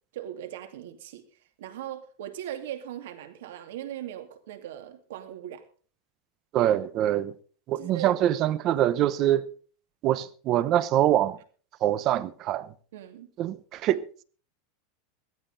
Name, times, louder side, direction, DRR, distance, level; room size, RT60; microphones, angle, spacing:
voice 1, 0.1-1.2 1.6-5.7 7.7-8.1 8.6-8.8 12.9-13.3, right 11 dB, 80° right, 2.5 m, -39 dB
voice 2, 6.5-7.3 7.7-9.5 10.0-11.4 11.8-12.7 13.4-14.0, right 12 dB, 35° right, 0.8 m, -24 dB
16.5 x 14.0 x 4.0 m
supercardioid pair, 165°, 0 cm